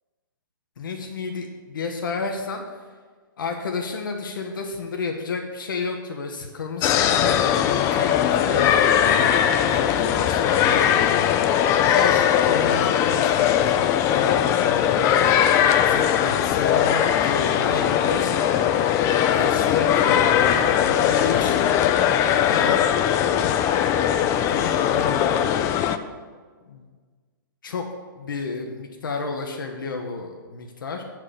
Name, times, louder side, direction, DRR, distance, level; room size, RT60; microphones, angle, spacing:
voice 1, 0.8-2.8 3.4-10.9 11.7-13.6 14.1-18.6 19.3-21.9 22.3-22.8 23.1-23.6 24.4-25.5 26.6-26.9 27.6-27.9 28.2-31.0, left 4 dB, 70° left, 3 dB, 0.9 m, -31 dB
sound 1, 6.8-26.0, left 9 dB, 25° left, 0.4 m, -20 dB
7.4 x 4.6 x 6.8 m, 1.5 s
hypercardioid pair, 120°, 11 cm